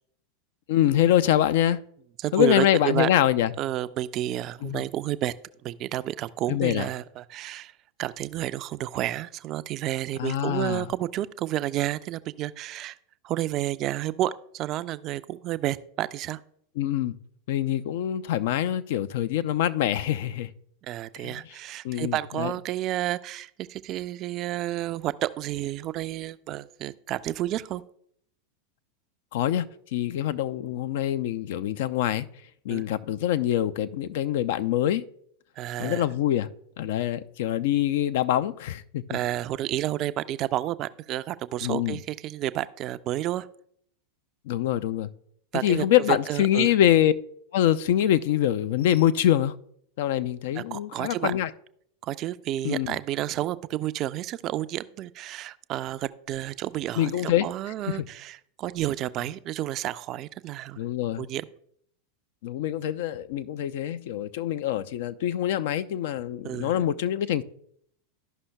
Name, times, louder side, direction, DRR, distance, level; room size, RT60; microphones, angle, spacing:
voice 1, 0.7-1.8 2.3-3.5 4.6-4.8 6.5-6.9 10.2-10.9 16.8-17.2 17.5-20.5 21.2-21.3 21.8-22.5 29.3-29.6 29.9-32.3 32.7-35.0 35.8-36.5 36.8-39.2 41.6-42.0 44.5-45.1 45.6-47.1 47.5-49.5 50.0-51.5 52.6-53.0 57.0-57.5 57.9-58.0 60.8-61.2 62.4-67.4, left 11 dB, 60° left, 0.4 m, -24 dB
voice 2, 2.2-3.1 3.6-5.3 5.6-7.7 8.0-13.0 13.2-16.4 20.8-27.8 32.7-32.8 35.6-36.1 39.1-43.5 45.5-46.7 50.6-51.3 52.0-60.8 61.2-61.5 66.4-66.9, right 13 dB, 40° right, 0.3 m, -30 dB
13.0 x 5.5 x 2.2 m
figure-of-eight pair, 90°, 0 cm